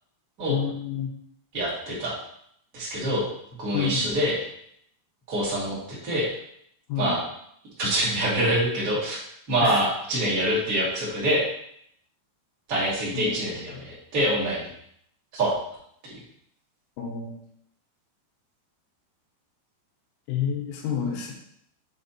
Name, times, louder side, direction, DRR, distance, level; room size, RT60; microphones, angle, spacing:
voice 1, 0.5-1.1 3.7-4.1 6.9-7.2 9.6-9.8 13.1-13.8 17.0-17.4 20.3-21.3, left 8 dB, 90° left, 0 dB, 3.7 m, -29 dB
voice 2, 1.5-2.1 2.7-3.2 3.6-4.4 5.3-6.3 7.0-7.2 7.8-9.2 9.5-11.4 12.7-14.7 15.3-15.5 16.1-16.2, right 1 dB, 25° right, -7 dB, 2.0 m, -25 dB
7.7 x 4.2 x 4.3 m, 0.70 s
omnidirectional pair, 5.6 m